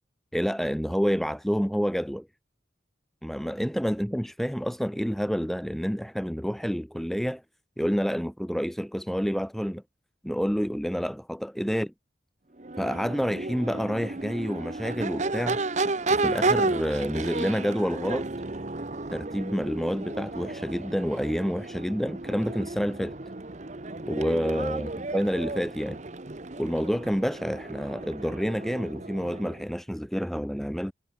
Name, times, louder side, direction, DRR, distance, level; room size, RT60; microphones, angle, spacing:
voice 1, 0.3-2.3 3.2-7.4 7.8-9.8 10.2-11.9 12.8-15.6 16.1-18.3 19.1-23.2 24.1-26.0 26.6-30.9, equal, ahead, 1.3 m, -28 dB
Crowd / Race car auto racing / Accelerating revving vroom, 12.6-29.7, right 3 dB, 40° right, 1.1 m, -32 dB
head